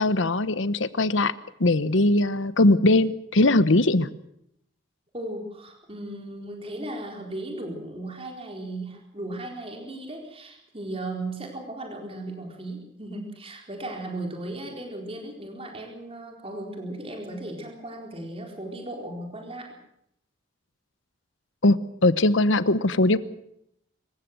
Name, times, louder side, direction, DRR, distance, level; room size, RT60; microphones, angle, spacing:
voice 1, 0.0-1.3 1.6-4.1 21.6-23.2, left 2 dB, 70° left, 15 dB, 1.0 m, -20 dB
voice 2, 5.1-19.8, right 1 dB, 30° right, 2 dB, 4.2 m, -36 dB
26.0 x 15.0 x 7.9 m, 0.75 s
head